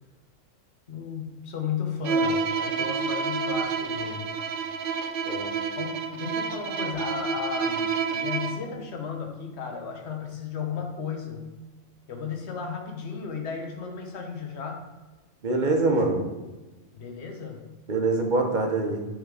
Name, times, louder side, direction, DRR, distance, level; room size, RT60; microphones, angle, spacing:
voice 1, 0.9-4.3 5.8-11.4 12.1-14.8 16.9-17.6, left 6 dB, 55° left, 2 dB, 1.3 m, -34 dB
Bowed string instrument, 2.0-8.7, right 5 dB, 65° right, 0.5 m, -29 dB
voice 2, 15.4-16.3 17.9-19.1, right 2 dB, 40° right, 2 dB, 0.9 m, -24 dB
7.7 x 4.0 x 4.8 m, 1.2 s
omnidirectional pair, 1.4 m